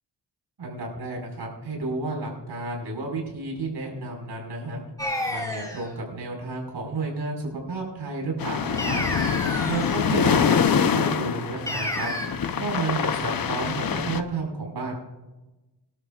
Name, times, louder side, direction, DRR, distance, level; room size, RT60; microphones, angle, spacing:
voice 1, 0.6-4.8 5.3-9.0 9.7-12.1 12.6-14.9, right 3 dB, 80° right, 0 dB, 5.5 m, -31 dB
sound 1, 5.0-5.9 8.8-10.1 11.7-12.3, left 1 dB, 10° left, 3.0 m, -30 dB
sound 2, 8.4-14.2, left 7 dB, 55° left, 0.8 m, -25 dB
25.0 x 12.0 x 2.5 m, 1.1 s
wide cardioid pair, 120°, 41 cm